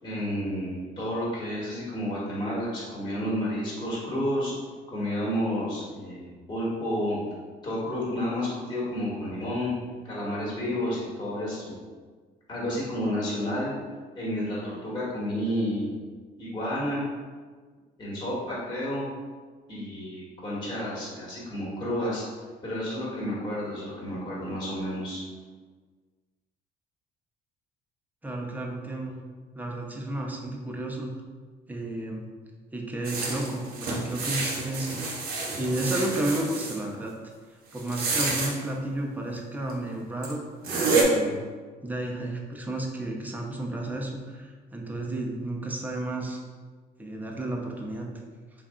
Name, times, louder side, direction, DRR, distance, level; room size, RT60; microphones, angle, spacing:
voice 1, 0.0-4.5 4.9-7.2 7.6-9.7 10.0-11.7 12.5-13.7 14.1-15.9 16.4-17.0 18.0-19.1 19.7-22.2 22.6-25.2, equal, 25° left, -7 dB, 1.2 m, -30 dB
voice 2, 28.2-29.2 29.5-31.1 31.7-32.2 32.7-37.1 37.7-40.4 40.9-41.4 41.8-46.4 47.0-48.1, right 1 dB, 10° right, 0 dB, 0.5 m, -32 dB
sound 1, 33.0-36.8 37.8-38.5 39.7-39.8 40.2-40.3 40.6-41.0, right 3 dB, 65° right, 0.8 m, -28 dB
3.2 x 2.3 x 3.6 m, 1.5 s
cardioid pair, 110°, 17 cm